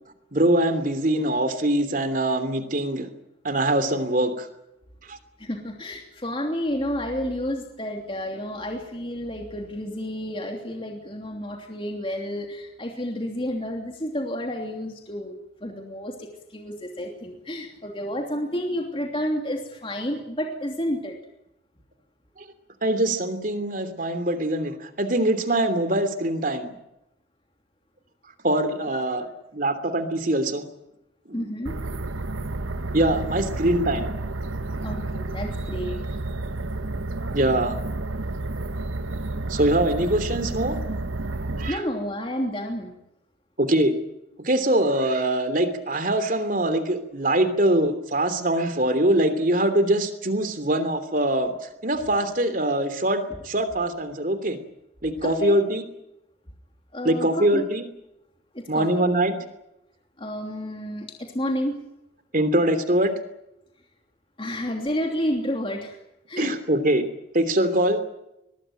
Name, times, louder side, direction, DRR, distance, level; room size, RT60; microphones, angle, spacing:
voice 1, 0.3-3.1 3.4-4.5 5.1-5.2 22.4-22.5 22.8-26.7 28.4-29.3 29.5-30.6 31.3-31.4 32.9-34.1 37.3-37.8 39.5-40.8 41.6-41.8 43.6-43.9 44.4-51.5 51.8-54.6 55.0-55.8 57.0-57.8 58.7-59.4 62.3-63.1 66.4-67.0 67.3-68.0, right 1 dB, 45° right, 10 dB, 3.1 m, -23 dB
voice 2, 5.4-21.1 28.9-29.3 31.3-31.8 34.8-36.0 41.7-42.9 55.2-55.6 56.9-57.6 58.5-59.1 60.2-61.8 64.4-66.0 66.3-66.5, equal, 25° left, 2 dB, 3.0 m, -30 dB
sound 1, 31.7-41.7, right 2 dB, 90° right, 1.2 m, -30 dB
23.5 x 20.5 x 9.1 m, 0.87 s
head